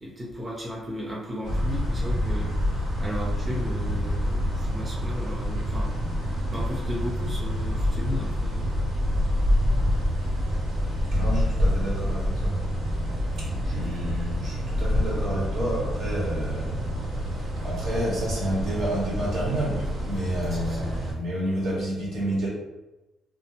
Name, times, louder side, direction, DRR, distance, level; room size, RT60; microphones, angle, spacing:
voice 1, 0.0-6.1 6.3-8.7 13.6-13.8 20.5-21.0, left 1 dB, 25° right, -5 dB, 0.7 m, -35 dB
sound 1, 1.4-21.1, equal, 90° right, 1.0 m, -27 dB
voice 2, 11.1-12.6 13.4-22.5, right 1 dB, 75° right, -5 dB, 1.2 m, -30 dB
2.6 x 2.2 x 2.9 m, 1.0 s
cardioid pair, 90°, 0 cm